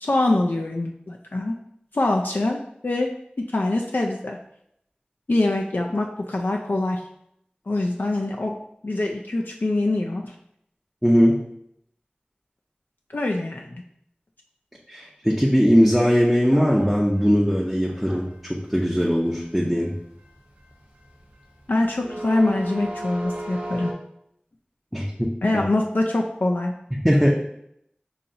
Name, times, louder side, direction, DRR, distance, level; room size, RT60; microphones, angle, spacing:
voice 1, 0.0-1.5 1.9-3.1 3.5-4.4 5.3-7.0 7.7-8.5 8.8-10.3 13.1-13.8 21.7-23.9 25.4-26.7, left 2 dB, 75° left, 1 dB, 0.4 m, -24 dB
voice 2, 11.0-11.4 14.9-18.2 18.7-19.9 24.9-25.3 27.0-27.3, equal, 5° right, -4 dB, 0.6 m, -19 dB
sound 1, 16.4-23.9, right 1 dB, 75° right, 0.9 m, -36 dB
5.5 x 2.8 x 2.6 m, 0.74 s
wide cardioid pair, 40°, 3 cm